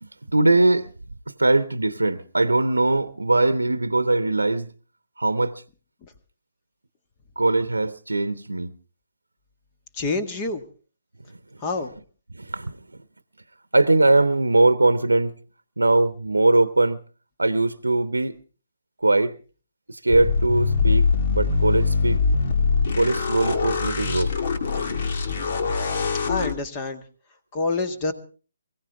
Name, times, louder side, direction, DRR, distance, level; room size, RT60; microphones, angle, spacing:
voice 1, 0.0-0.9 1.3-4.7 5.2-5.6 7.4-8.7 12.3-12.8 13.7-15.4 15.8-17.0 17.4-18.4 19.0-19.3 19.9-22.2 22.9-24.3, right 2 dB, 85° right, 0.9 m, -21 dB
voice 2, 9.9-10.6 11.6-11.9 26.2-27.0 27.5-28.1, left 3 dB, 25° left, 1.9 m, -27 dB
sound 1, 20.1-26.5, left 4 dB, 50° left, 2.4 m, -23 dB
23.0 x 16.0 x 3.6 m
figure-of-eight pair, 140°, 0 cm